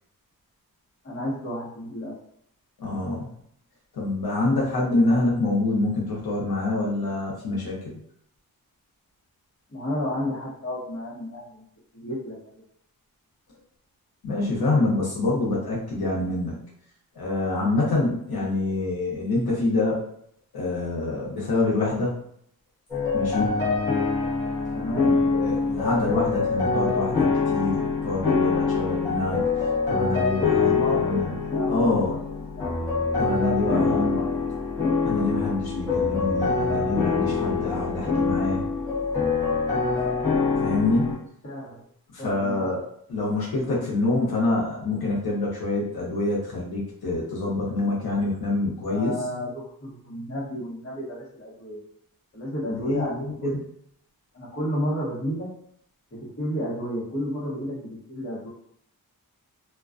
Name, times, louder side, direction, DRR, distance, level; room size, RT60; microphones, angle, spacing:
voice 1, 1.0-2.1 9.7-11.6 11.9-12.5 24.7-25.2 30.6-31.7 32.1-32.2 32.6-33.1 33.4-34.3 35.4-35.5 41.4-41.8 42.2-42.7 48.8-49.5 49.8-51.8 52.3-53.5 54.3-55.5 56.2-58.5, equal, 40° left, -7 dB, 1.0 m, -32 dB
voice 2, 2.8-3.3 3.9-7.8 14.2-16.6 17.2-20.0 20.5-22.2 23.1-23.5 24.9-29.4 29.9-31.3 31.7-32.2 33.2-34.2 35.0-38.6 40.6-41.2 42.1-42.8 43.1-49.1 52.7-53.6, left 2 dB, 80° left, -5 dB, 0.8 m, -26 dB
sound 1, 22.9-41.2, left 4 dB, 10° left, 0.9 m, -25 dB
2.3 x 2.2 x 2.4 m, 0.68 s
wide cardioid pair, 175°, 37 cm